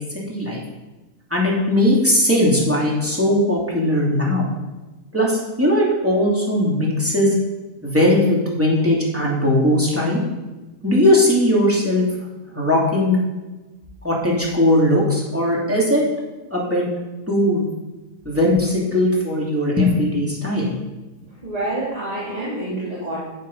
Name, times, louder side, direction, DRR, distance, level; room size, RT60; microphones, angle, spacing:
voice 1, 0.3-0.6 1.3-4.5 5.1-7.4 7.8-10.2 10.8-12.0 12.5-13.2 14.0-16.0 16.5-16.8 17.3-17.7 18.2-20.7, left 1 dB, 10° right, -5 dB, 2.8 m, -18 dB
voice 2, 21.4-23.2, right 1 dB, 25° right, -8 dB, 2.7 m, -27 dB
9.1 x 8.0 x 5.6 m, 1.1 s
omnidirectional pair, 1.6 m